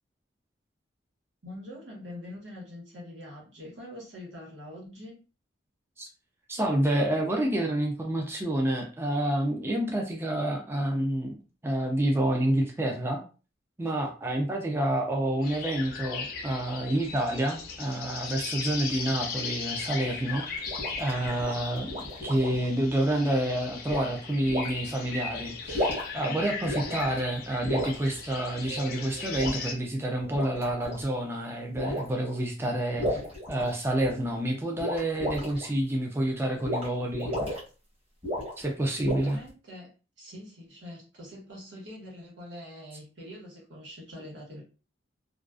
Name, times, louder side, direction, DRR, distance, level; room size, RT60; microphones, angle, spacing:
voice 1, 1.4-5.2 39.0-39.9 40.2-44.6, left 1 dB, 80° right, -3 dB, 1.1 m, -44 dB
voice 2, 6.5-13.2 13.8-20.6 21.0-33.2 33.5-37.3 38.6-39.4, right 1 dB, 15° right, 1 dB, 0.3 m, -28 dB
sound 1, 15.4-29.7, left 5 dB, 50° left, 0.5 m, -38 dB
sound 2, 20.3-22.6 23.9-24.1 24.5-24.7 25.6-26.2 26.7-27.2 27.6-28.0 29.3-29.6 30.2-31.0 31.7-32.1 33.0-34.1 34.8-35.6 36.6-36.9 37.1-37.6 38.2-38.6 39.0-39.5, left 1 dB, 30° right, 1.0 m, -33 dB
2.3 x 2.3 x 2.4 m, 0.35 s
head